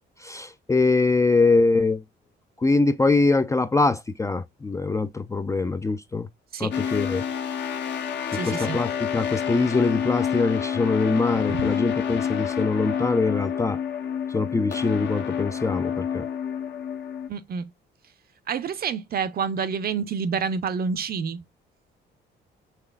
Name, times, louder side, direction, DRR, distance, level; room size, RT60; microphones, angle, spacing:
voice 1, 0.2-2.0 2.6-6.3 6.6-7.2 8.3-13.8 14.3-16.3, left 3 dB, 15° left, 0.3 m, -23 dB
sound 1, 6.7-17.3, left 8 dB, 65° left, 0.9 m, -28 dB
voice 2, 8.3-8.8 11.5-11.7 17.3-17.7 18.5-21.4, right 6 dB, 50° right, 0.6 m, -28 dB
5.8 x 3.2 x 2.3 m
cardioid pair, 90°, 20 cm